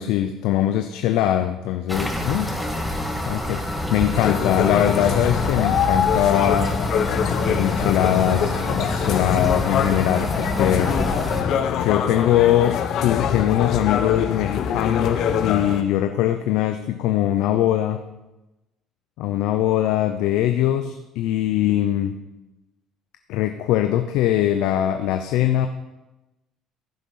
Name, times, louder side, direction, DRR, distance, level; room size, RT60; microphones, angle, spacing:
voice 1, 0.0-2.6 3.3-6.7 7.5-11.0 11.7-18.0 19.2-22.2 23.3-25.7, left 12 dB, 80° left, 8 dB, 0.7 m, -22 dB
sound 1, 1.9-11.4, equal, 5° left, 1.7 m, -27 dB
sound 2, 4.1-15.8, left 7 dB, 60° left, 1.0 m, -24 dB
14.5 x 6.5 x 5.7 m, 1.0 s
cardioid pair, 115°, 0 cm